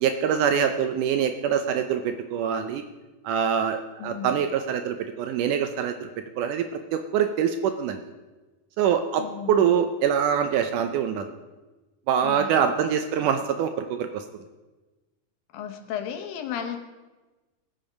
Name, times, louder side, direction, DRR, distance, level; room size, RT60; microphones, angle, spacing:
voice 1, 0.0-2.8 3.2-6.1 6.4-6.7 6.9-8.0 8.8-11.3 12.1-14.2, right 8 dB, 75° right, 7 dB, 2.0 m, -24 dB
voice 2, 4.0-4.4 9.2-9.7 12.2-12.6 13.2-13.3 15.5-16.8, left 8 dB, 75° left, 5 dB, 2.8 m, -34 dB
21.0 x 7.0 x 5.2 m, 1.2 s
omnidirectional pair, 4.2 m